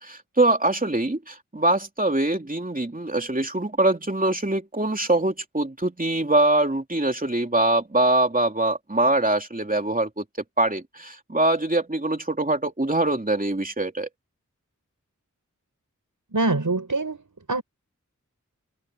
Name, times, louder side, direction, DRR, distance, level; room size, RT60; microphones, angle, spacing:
voice 1, 0.0-10.2 10.6-14.1, right 2 dB, 25° right, 3.0 m, -23 dB
voice 2, 16.3-17.6, right 3 dB, 80° right, 5.5 m, -25 dB
wide cardioid pair, 50°, 31 cm